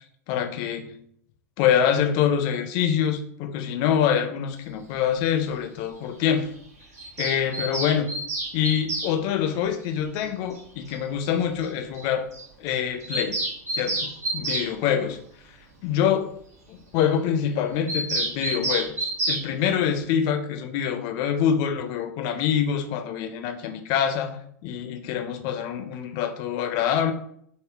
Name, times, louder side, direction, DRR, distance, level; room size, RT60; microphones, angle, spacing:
voice 1, 0.3-1.0 1.6-6.5 7.2-8.1 8.5-12.2 12.6-13.4 13.8-15.2 15.8-16.3 16.7-27.1, left 8 dB, 50° left, 7 dB, 0.5 m, -25 dB
Bird vocalization bird call bird song, 7.0-9.1 10.6-10.7 10.9-11.0 11.2-11.3 11.6-11.7 11.9-12.0 12.3-12.4 12.7-14.7 17.9-19.4, right 2 dB, 70° right, 1.1 m, -29 dB
3.6 x 2.1 x 3.4 m, 0.66 s
figure-of-eight pair, 85°, 9 cm